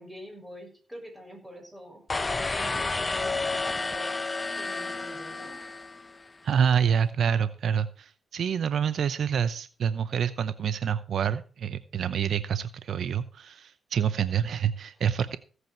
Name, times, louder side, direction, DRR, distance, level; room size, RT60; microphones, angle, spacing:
voice 1, 0.0-5.8, equal, 10° right, 1 dB, 6.6 m, -46 dB
sound 1, 2.1-6.3, left 3 dB, 25° left, 0.9 m, -31 dB
voice 2, 6.4-15.4, right 8 dB, 65° right, 13 dB, 0.7 m, -27 dB
16.0 x 8.1 x 4.5 m, 0.38 s
cardioid pair, 90°, 0 cm